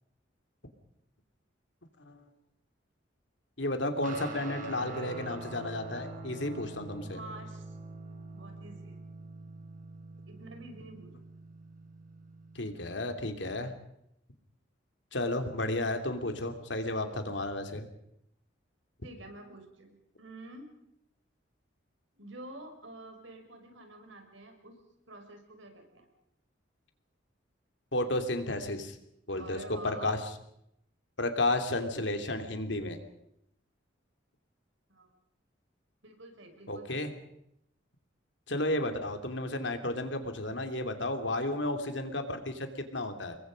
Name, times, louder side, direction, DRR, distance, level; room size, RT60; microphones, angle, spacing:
voice 1, 3.6-7.2 12.5-13.7 15.1-17.9 27.9-29.0 29.3-30.2 31.2-33.0 36.7-37.1 38.5-43.4, left 1 dB, 65° left, 6 dB, 3.0 m, -32 dB
Guitar, 4.0-12.8, right 2 dB, 45° right, 4.3 m, -45 dB
voice 2, 7.1-7.7 8.3-9.0 10.3-11.1 19.0-20.7 22.1-24.8 25.1-26.1 29.4-30.2 34.9-35.1 36.0-37.2 41.2-41.3, right 2 dB, 80° right, 4 dB, 5.8 m, -48 dB
28.5 x 22.5 x 5.3 m, 0.75 s
head